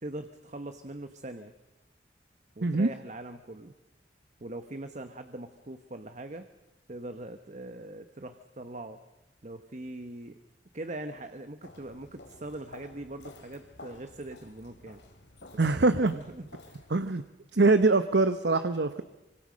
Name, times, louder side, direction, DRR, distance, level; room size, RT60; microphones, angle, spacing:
voice 1, 0.0-1.5 2.6-3.7 4.4-6.5 6.9-9.0 9.4-10.4 10.7-15.0 15.5-16.9, right 1 dB, 40° right, 8 dB, 1.1 m, -42 dB
Walk footsteps, 11.6-17.2, left 2 dB, 85° left, 3.3 m, -52 dB
voice 2, 15.6-16.1 16.9-17.2 17.5-19.0, right 3 dB, 70° right, 10 dB, 0.9 m, -23 dB
25.5 x 25.0 x 6.4 m, 1.0 s
head